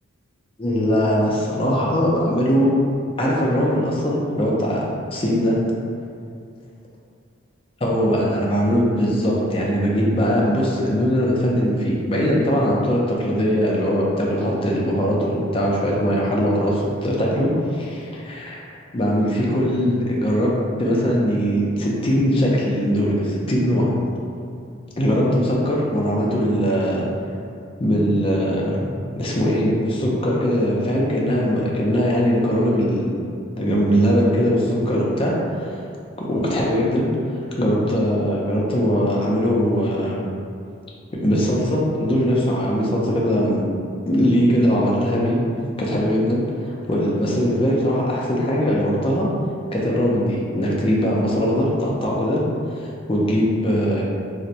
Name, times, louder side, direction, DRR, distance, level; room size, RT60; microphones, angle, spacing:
voice 1, 0.6-2.7 3.2-4.9 5.1-5.6 7.8-18.6 18.9-20.5 20.8-23.9 25.0-27.1 27.8-28.9 29.2-33.2 33.6-35.3 35.6-35.7 36.2-37.1 37.6-40.2 41.1-43.6 44.1-45.4 45.8-49.3 49.7-52.4 52.8-54.0, equal, 25° left, -4 dB, 0.4 m, -20 dB
4.1 x 2.1 x 2.5 m, 2.4 s
head